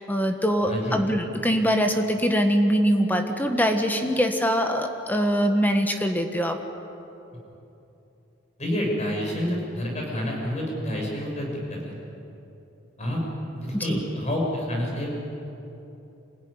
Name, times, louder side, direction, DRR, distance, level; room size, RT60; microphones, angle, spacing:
voice 1, 0.0-6.6 13.7-14.0, equal, 10° left, 5 dB, 1.3 m, -23 dB
voice 2, 0.6-1.0 8.6-11.9 13.0-13.2 13.5-15.1, equal, 35° left, -1 dB, 6.1 m, -28 dB
26.0 x 16.0 x 9.8 m, 2.9 s
head